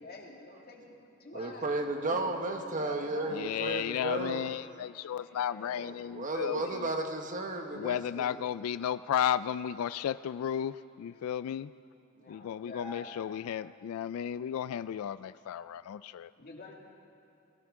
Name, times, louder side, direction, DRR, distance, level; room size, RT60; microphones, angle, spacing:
voice 1, 0.0-1.7 2.0-3.6 5.1-6.0 12.2-13.2 16.4-16.7, left 2 dB, 45° left, -1 dB, 2.1 m, -48 dB
voice 2, 1.3-4.5 5.8-8.4, right 2 dB, 40° right, 4 dB, 1.2 m, -34 dB
voice 3, 3.3-6.9 7.7-11.7 12.3-16.3, left 9 dB, 80° left, 16 dB, 0.3 m, -34 dB
22.0 x 16.0 x 3.7 m, 2.9 s
head